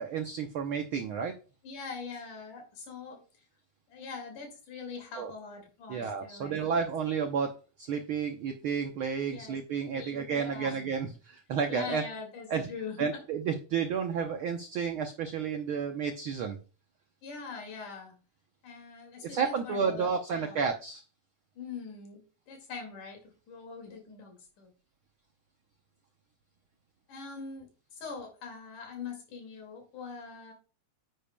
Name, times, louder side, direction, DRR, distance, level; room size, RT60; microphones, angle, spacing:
voice 1, 0.0-1.3 5.2-5.3 5.9-12.0 12.5-12.7 13.0-16.6 19.2-21.0, right 6 dB, 80° right, 5 dB, 1.2 m, -31 dB
voice 2, 1.6-3.2 3.9-6.9 9.3-9.6 9.9-10.8 11.7-13.2 17.2-18.2 18.6-20.6 21.6-24.7 27.1-30.5, left 5 dB, 85° left, 3 dB, 3.8 m, -43 dB
10.0 x 8.3 x 2.2 m, 0.36 s
omnidirectional pair, 3.5 m